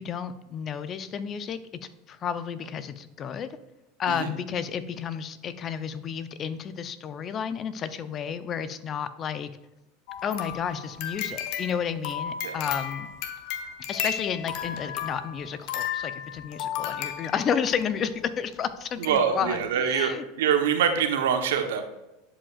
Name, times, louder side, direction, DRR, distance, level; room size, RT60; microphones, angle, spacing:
voice 1, 0.0-1.6 2.1-3.6 4.0-9.5 10.2-13.1 13.9-20.2, left 7 dB, 35° left, 13 dB, 0.6 m, -31 dB
sound 1, 10.1-17.8 18.5-18.6 19.0-19.2 19.5-19.6, left 9 dB, 60° left, 0.9 m, -34 dB
voice 2, 19.0-20.1 20.4-21.8, right 8 dB, 80° right, 6 dB, 1.0 m, -24 dB
11.0 x 5.1 x 2.4 m, 1.0 s
supercardioid pair, 110°, 0 cm